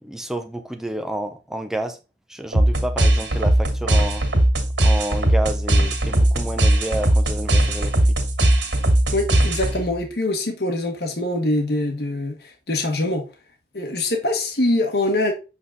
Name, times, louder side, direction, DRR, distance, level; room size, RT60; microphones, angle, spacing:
voice 1, 0.0-2.0 2.3-4.2 4.8-7.9, right 1 dB, 5° right, 0.8 m, -30 dB
sound 1, 2.5-10.0, right 1 dB, 90° right, 2.6 m, -19 dB
voice 2, 9.1-13.2 13.7-15.3, left 1 dB, 65° left, 1.4 m, -23 dB
7.6 x 4.0 x 3.7 m
head